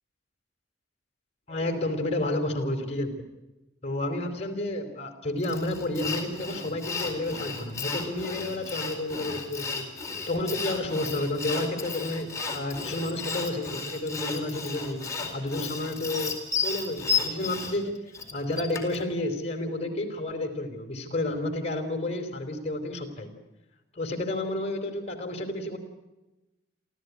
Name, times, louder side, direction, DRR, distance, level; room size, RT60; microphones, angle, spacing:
voice 1, 1.5-3.1 3.8-9.8 10.3-15.1 15.3-16.4 16.6-18.0 18.3-23.3 23.9-25.8, left 1 dB, 40° left, 5 dB, 4.5 m, -31 dB
Sawing, 5.4-19.0, left 5 dB, 20° left, 4.5 m, -33 dB
28.0 x 14.5 x 9.8 m, 1.0 s
head